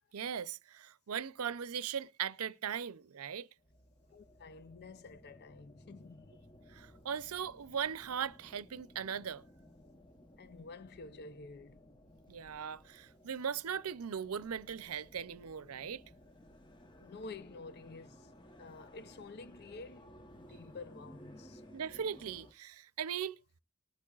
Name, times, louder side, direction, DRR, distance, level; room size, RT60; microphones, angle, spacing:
voice 1, 0.1-3.5 6.7-9.4 12.3-16.0 21.7-23.4, right 7 dB, 80° right, 0.6 m, -39 dB
sound 1, 3.6-22.5, equal, 20° left, 1.0 m, -58 dB
voice 2, 4.1-6.3 10.4-11.9 17.0-18.3 18.6-21.6, left 3 dB, 50° left, 0.6 m, -50 dB
19.5 x 8.5 x 2.4 m
head